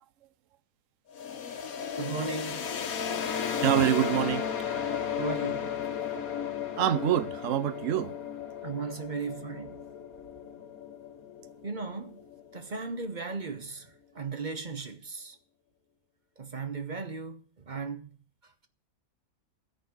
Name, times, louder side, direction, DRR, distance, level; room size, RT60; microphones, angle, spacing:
sound 1, 1.1-12.8, left 7 dB, 75° left, 1.5 m, -35 dB
voice 1, 2.0-2.7 5.2-5.7 8.6-9.8 11.6-12.2 12.5-15.4 16.4-18.1, right 4 dB, 35° right, 0.9 m, -36 dB
voice 2, 3.6-4.5 6.8-8.1, right 11 dB, 65° right, 1.1 m, -26 dB
15.0 x 5.3 x 9.2 m
omnidirectional pair, 1.5 m